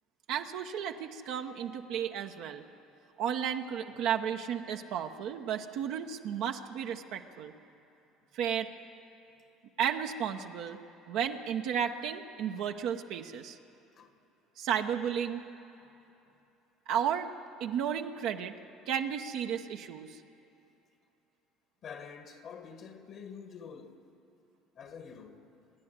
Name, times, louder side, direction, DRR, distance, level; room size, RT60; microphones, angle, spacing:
voice 1, 0.3-2.6 3.2-7.5 8.3-8.7 9.8-10.8 11.1-13.6 14.6-15.4 16.9-17.3 17.6-18.5 18.9-20.2, right 8 dB, 65° right, 0.9 m, -33 dB
voice 2, 21.8-24.1 24.7-25.5, left 6 dB, 55° left, 2.0 m, -47 dB
26.5 x 11.0 x 9.7 m
hypercardioid pair, 65°, 0 cm